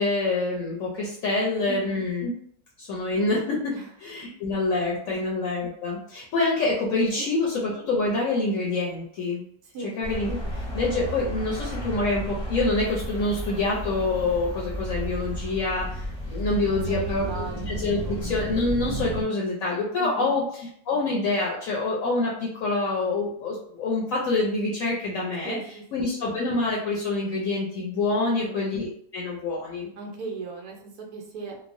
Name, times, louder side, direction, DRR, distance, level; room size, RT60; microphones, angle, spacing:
voice 1, 0.0-2.3 2.8-3.8 4.0-9.4 9.8-20.4 20.9-25.6 25.9-29.9, left 3 dB, 65° left, -3 dB, 0.9 m, -26 dB
voice 2, 1.7-2.0 3.7-3.9 5.1-5.2 7.1-7.3 9.6-10.0 10.4-10.5 16.7-17.7 18.0-18.3 20.0-20.3 25.4-26.1 28.2-28.6 30.0-31.6, right 3 dB, 75° right, 1 dB, 1.1 m, -37 dB
sound 1, 10.0-19.2, right 1 dB, 40° left, 0.7 m, -33 dB
3.1 x 2.1 x 2.5 m, 0.64 s
omnidirectional pair, 1.7 m